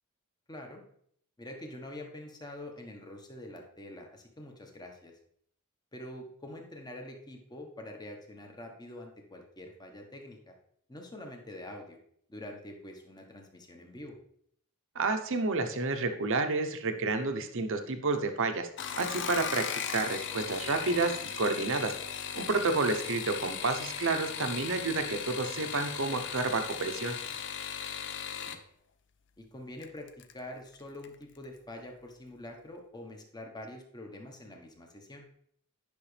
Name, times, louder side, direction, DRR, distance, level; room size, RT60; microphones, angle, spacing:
voice 1, 0.5-0.8 1.4-5.1 5.9-10.5 10.9-12.0 12.3-14.2 28.3-28.6 29.4-35.3, left 1 dB, 20° left, 2 dB, 1.2 m, -45 dB
voice 2, 15.0-18.7 19.0-19.6 19.9-21.9 22.3-27.2, right 3 dB, 65° right, 6 dB, 0.9 m, -30 dB
sound 1, 18.7-28.6 29.8-30.3 30.7-31.2 31.4-31.5, left 8 dB, 55° left, 0.6 m, -37 dB
10.0 x 6.0 x 3.3 m, 0.66 s
head